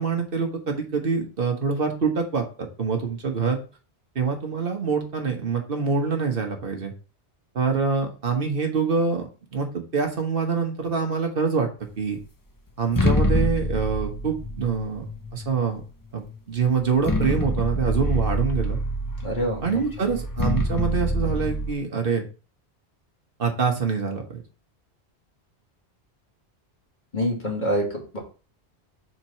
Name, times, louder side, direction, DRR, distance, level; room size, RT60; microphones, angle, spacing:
voice 1, 0.0-3.6 4.1-6.9 7.5-11.7 12.0-12.2 12.8-15.1 15.3-15.8 16.1-18.8 19.6-22.2 23.4-24.4, right 5 dB, 55° right, 4 dB, 1.4 m, -25 dB
sound 1, 12.8-15.6 16.3-16.4 16.8-21.7, left 1 dB, 25° left, 0.6 m, -26 dB
voice 2, 19.2-19.8 27.1-28.2, equal, 45° left, -2 dB, 2.4 m, -26 dB
4.7 x 4.4 x 5.6 m, 0.35 s
omnidirectional pair, 1.1 m